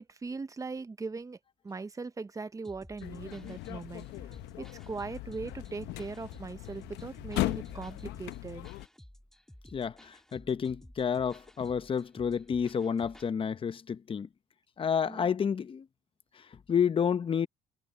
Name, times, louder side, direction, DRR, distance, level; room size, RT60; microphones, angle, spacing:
voice 1, 0.0-1.4 1.6-4.1 4.6-8.7 15.1-15.3, right 4 dB, 20° right, 0.8 m, -40 dB
sound 1, 2.6-13.3, equal, 5° left, 2.3 m, -54 dB
sound 2, 3.0-8.9, left 17 dB, 90° left, 0.8 m, -38 dB
voice 2, 9.7-14.3 14.8-15.8 16.7-17.5, left 7 dB, 30° left, 0.9 m, -30 dB
cardioid pair, 110°, 17 cm